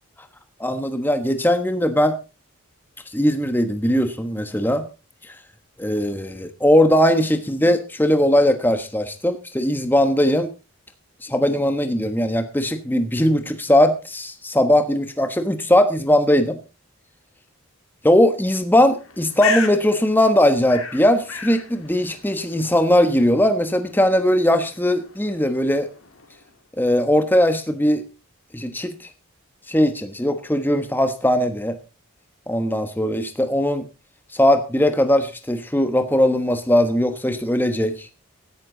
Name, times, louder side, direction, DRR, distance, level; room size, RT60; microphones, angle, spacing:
voice 1, 0.6-2.2 3.1-4.9 5.8-10.5 11.2-16.6 18.0-25.9 26.8-28.0 28.5-29.1 29.7-31.8 32.5-33.9 34.3-38.1, left 1 dB, 10° left, 8 dB, 1.2 m, -19 dB
Bird, 18.9-26.5, left 7 dB, 70° left, 2.4 m, -35 dB
15.5 x 11.5 x 3.9 m, 0.31 s
head